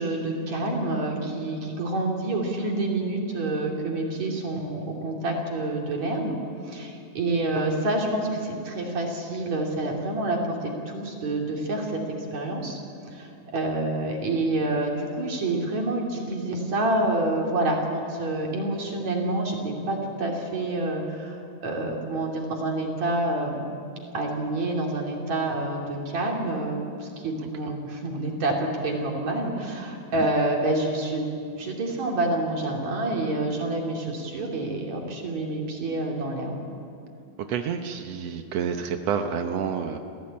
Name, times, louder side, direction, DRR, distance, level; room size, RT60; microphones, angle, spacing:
voice 1, 0.0-6.4 6.6-12.8 13.1-23.6 24.1-31.2 31.5-36.6, right 2 dB, 50° right, 0 dB, 3.8 m, -28 dB
voice 2, 37.5-40.0, right 7 dB, 90° right, 5 dB, 1.4 m, -29 dB
28.5 x 15.5 x 8.7 m, 2.6 s
omnidirectional pair, 4.4 m